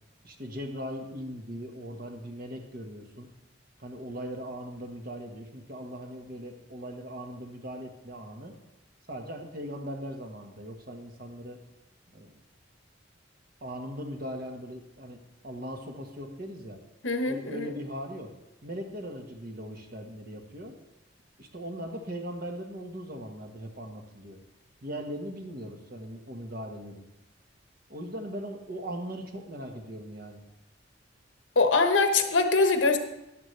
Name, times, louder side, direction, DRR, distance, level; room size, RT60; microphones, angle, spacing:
voice 1, 0.2-3.3 3.8-8.5 9.1-11.6 12.1-12.3 13.6-16.8 17.2-18.3 18.6-20.8 21.4-24.4 24.8-27.0 27.9-30.4, equal, 50° right, 3 dB, 1.5 m, -39 dB
voice 2, 17.0-17.7 31.6-33.0, left 3 dB, 90° left, 6 dB, 1.1 m, -23 dB
13.5 x 10.5 x 3.3 m, 0.96 s
head